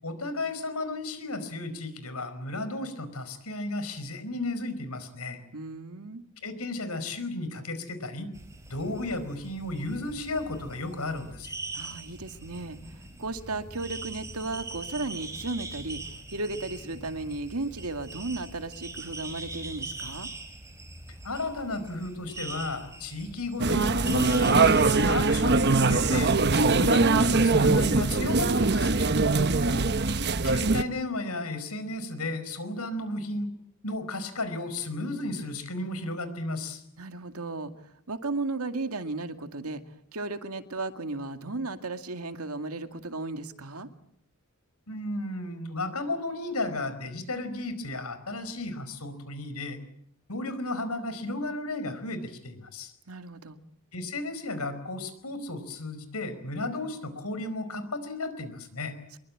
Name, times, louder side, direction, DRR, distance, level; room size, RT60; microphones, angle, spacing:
voice 1, 0.0-5.4 6.4-8.3 8.7-11.5 21.2-26.3 26.7-29.1 30.4-33.5 33.8-36.8 44.9-49.8 50.3-52.9 53.9-58.9, left 2 dB, 85° left, 11 dB, 4.9 m, -34 dB
voice 2, 5.5-6.2 11.7-16.0 16.3-20.3 37.0-37.7 38.1-39.8 40.1-43.9 53.1-53.6, right 2 dB, 80° right, 7 dB, 2.2 m, -35 dB
sound 1, 8.3-25.4, right 2 dB, 15° right, 4.2 m, -42 dB
sound 2, 23.6-30.8, right 3 dB, 50° right, 1.1 m, -22 dB
25.0 x 23.0 x 8.7 m, 0.73 s
head